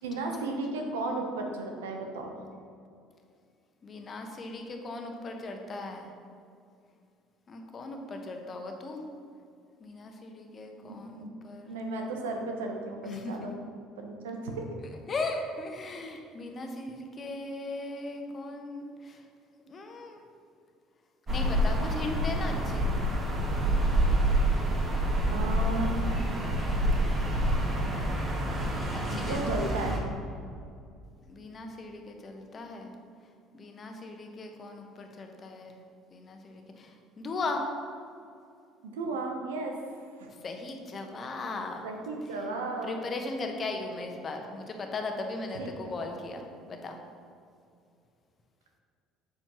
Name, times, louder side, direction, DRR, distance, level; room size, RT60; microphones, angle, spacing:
voice 1, 0.0-2.3 10.8-11.3 11.7-13.5 14.0-14.7 25.3-26.0 29.0-30.0 38.8-39.8 40.2-40.3 41.8-43.1 45.5-45.7, right 2 dB, 80° right, 2 dB, 0.8 m, -34 dB
voice 2, 3.8-6.1 7.5-9.0 9.8-11.8 13.0-13.5 15.1-19.2 19.6-20.2 21.3-22.9 29.1-29.5 31.3-32.9 33.5-35.8 36.1-37.7 40.2-41.9 42.8-47.0, left 2 dB, 40° left, 3 dB, 1.1 m, -38 dB
sound 1, 21.3-30.0, right 1 dB, 35° right, 1.7 m, -27 dB
7.5 x 7.2 x 3.1 m, 2.4 s
hypercardioid pair, 60°, 0 cm